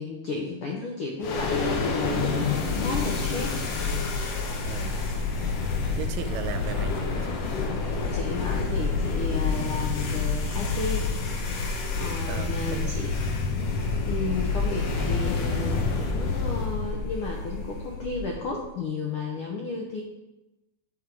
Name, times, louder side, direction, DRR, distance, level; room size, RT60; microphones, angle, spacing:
voice 1, 0.0-3.6 7.7-11.1 12.0-13.1 14.1-20.0, left 3 dB, 85° left, 0 dB, 1.2 m, -33 dB
sound 1, 1.2-18.6, left 4 dB, 65° left, 1.6 m, -28 dB
voice 2, 4.7-5.0 6.0-7.4 12.2-13.0 14.8-15.5, right 9 dB, 90° right, 9 dB, 2.3 m, -37 dB
9.4 x 5.6 x 4.8 m, 1.0 s
omnidirectional pair, 3.9 m